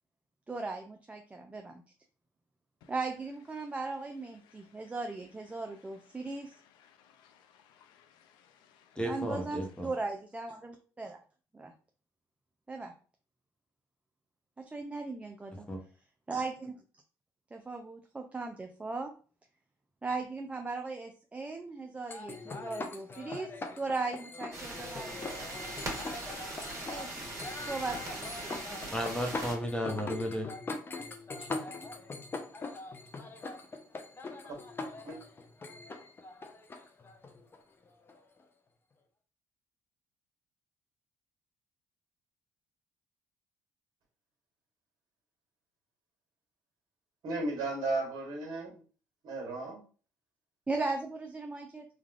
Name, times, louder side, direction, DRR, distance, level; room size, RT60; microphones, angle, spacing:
voice 1, 0.5-1.8 2.9-6.6 9.0-11.2 11.5-11.7 12.7-12.9 14.6-15.7 16.3-16.7 17.5-19.1 20.0-23.5 23.8-25.3 26.9-27.2 27.6-28.5 31.4-31.5 50.7-51.9, right 3 dB, 15° right, 0.4 m, -38 dB
voice 2, 6.8-8.8, left 8 dB, 80° left, 0.4 m, -63 dB
voice 3, 9.0-9.9 15.7-15.8 28.9-30.5, equal, 15° left, 0.9 m, -33 dB
sound 1, 22.1-38.4, left 3 dB, 30° left, 0.6 m, -42 dB
sound 2, 24.5-29.5, right 2 dB, 45° right, 1.4 m, -41 dB
voice 4, 47.2-48.8 49.2-49.8, right 2 dB, 65° right, 1.3 m, -34 dB
3.2 x 2.3 x 2.4 m
supercardioid pair, 70°, 7 cm